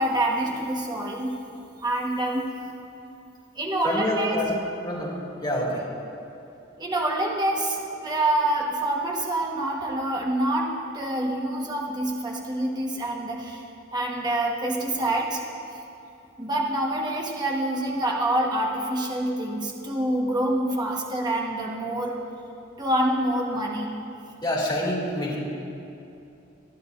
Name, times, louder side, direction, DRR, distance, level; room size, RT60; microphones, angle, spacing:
voice 1, 0.0-1.4 1.8-2.5 3.6-4.4 6.8-13.6 13.9-15.4 16.4-22.2 22.8-23.9, right 1 dB, 20° right, -2 dB, 1.2 m, -26 dB
voice 2, 3.8-4.5 4.8-5.1 5.4-5.8 24.4-25.3, left 1 dB, 20° left, -5 dB, 2.5 m, -26 dB
22.5 x 10.5 x 2.5 m, 2.7 s
head